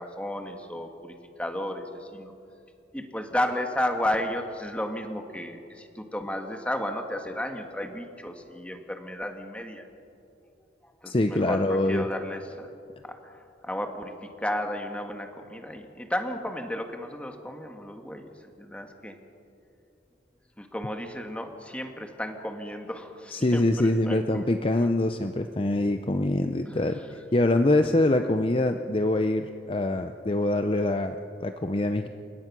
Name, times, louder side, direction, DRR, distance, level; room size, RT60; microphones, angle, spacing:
voice 1, 0.0-2.3 2.9-9.8 11.0-12.7 13.0-13.3 13.6-18.3 18.6-19.2 20.6-24.9 26.7-26.8, left 1 dB, 5° left, 5 dB, 1.6 m, -33 dB
voice 2, 11.1-12.1 23.3-27.0 27.3-32.1, left 2 dB, 30° left, 7 dB, 0.6 m, -24 dB
28.5 x 17.0 x 6.1 m, 2.6 s
head